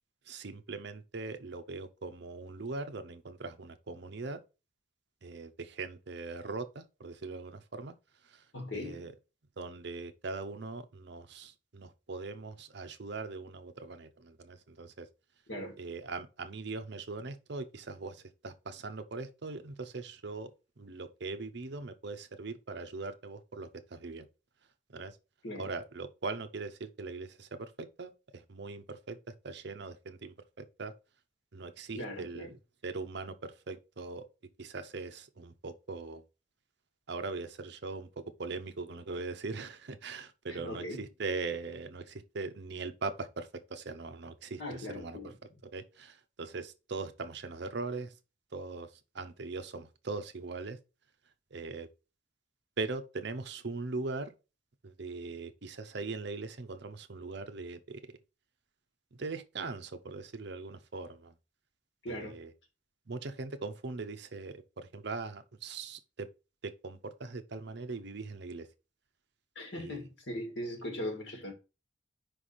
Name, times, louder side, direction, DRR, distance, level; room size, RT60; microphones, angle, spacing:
voice 1, 0.3-4.4 5.2-8.0 8.2-8.4 8.7-9.1 9.6-15.1 15.8-24.3 24.9-25.2 25.5-30.9 31.5-32.6 32.8-34.3 34.6-36.2 37.1-45.3 45.7-48.1 48.5-50.8 51.5-51.9 52.8-54.3 54.8-58.0 59.1-61.3 62.1-62.5 63.1-66.3 66.6-68.7 69.8-70.0, right 3 dB, 60° right, 0.7 m, -40 dB
voice 2, 8.5-9.1 15.5-15.8 25.4-25.7 32.0-32.5 40.5-41.1 44.6-45.3 62.0-62.4 69.6-71.5, left 1 dB, 65° left, 2.0 m, -39 dB
5.2 x 3.4 x 5.6 m
head